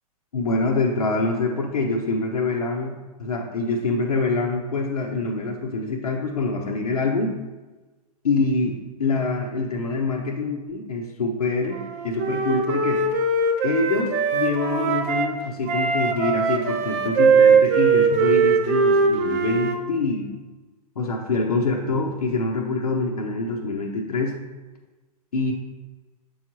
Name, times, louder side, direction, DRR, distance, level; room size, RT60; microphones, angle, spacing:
voice 1, 0.3-7.3 8.2-13.0 13.6-20.3 21.0-24.4 25.3-25.5, left 3 dB, 70° left, 0 dB, 0.8 m, -25 dB
Wind instrument woodwind instrument, 11.7-15.3 15.7-19.8, right 5 dB, 35° right, 0.6 m, -20 dB
7.0 x 4.7 x 2.9 m, 1.2 s
figure-of-eight pair, 105°, 20 cm